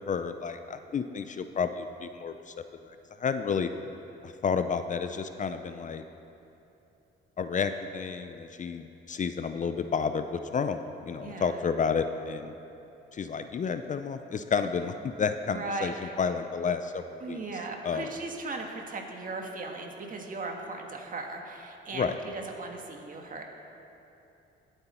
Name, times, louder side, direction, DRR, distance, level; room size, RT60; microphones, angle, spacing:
voice 1, 0.1-2.5 2.8-3.7 4.2-6.0 7.4-12.5 13.1-17.4 17.8-18.1 21.9-22.2, left 6 dB, 40° left, 9 dB, 0.5 m, -31 dB
voice 2, 11.2-11.6 15.5-16.1 17.2-23.4, right 3 dB, 45° right, 2 dB, 1.6 m, -38 dB
17.5 x 8.0 x 4.3 m, 2.9 s
cardioid pair, 90°, 20 cm